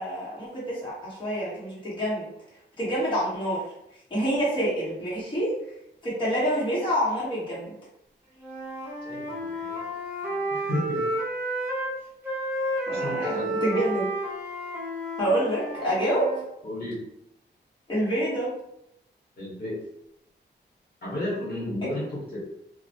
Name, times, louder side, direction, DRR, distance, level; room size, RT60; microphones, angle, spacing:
voice 1, 0.0-2.3 2.8-3.6 4.1-5.5 6.0-7.7 12.9-14.1 15.2-16.4 17.9-18.5, equal, 25° left, -8 dB, 1.1 m, -27 dB
Wind instrument woodwind instrument, 8.4-11.9 12.2-16.5, right 1 dB, 10° right, 0.9 m, -31 dB
voice 2, 9.0-9.9 10.2-11.0 12.9-13.6 16.6-17.1 19.4-19.8 21.0-22.4, left 1 dB, 55° left, -6 dB, 1.3 m, -33 dB
2.4 x 2.1 x 2.8 m, 0.81 s
cardioid pair, 90°, 19 cm